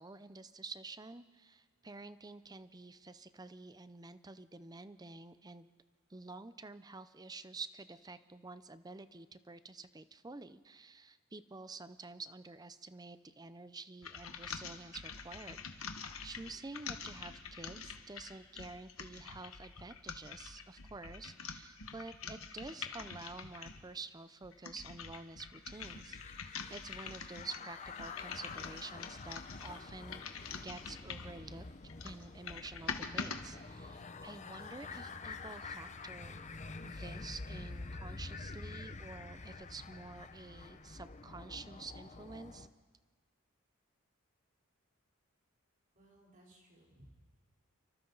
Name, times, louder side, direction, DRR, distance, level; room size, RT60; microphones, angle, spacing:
voice 1, 0.0-5.7 6.1-15.6 15.9-30.2 30.6-31.7 32.0-36.4 36.8-42.7, right 3 dB, 20° right, 13 dB, 0.6 m, -49 dB
sound 1, 14.0-23.9 24.4-31.4 31.8-33.4, left 6 dB, 80° left, 1.4 m, -46 dB
sound 2, 25.7-42.7, left 3 dB, 35° left, 0.8 m, -48 dB
voice 2, 45.9-47.1, right 1 dB, 40° right, -2 dB, 4.1 m, -61 dB
28.5 x 24.5 x 4.0 m, 1.5 s
head